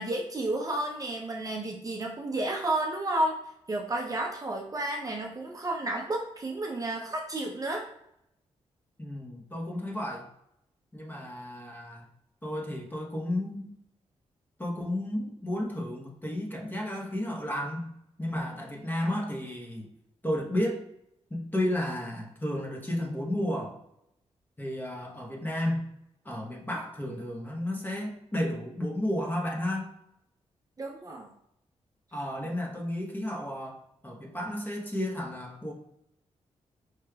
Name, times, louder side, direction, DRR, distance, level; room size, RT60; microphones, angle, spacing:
voice 1, 0.0-3.4 3.7-7.8 30.8-31.3, right 1 dB, 30° right, 0 dB, 0.5 m, -31 dB
voice 2, 9.0-10.3 10.9-12.1 12.4-13.7 14.6-17.9 18.2-19.9 20.2-20.9 21.3-23.8 24.6-25.8 26.2-29.9 32.1-35.7, left 1 dB, 15° left, 0 dB, 0.9 m, -32 dB
4.9 x 3.0 x 2.3 m, 0.77 s
cardioid pair, 80°, 12 cm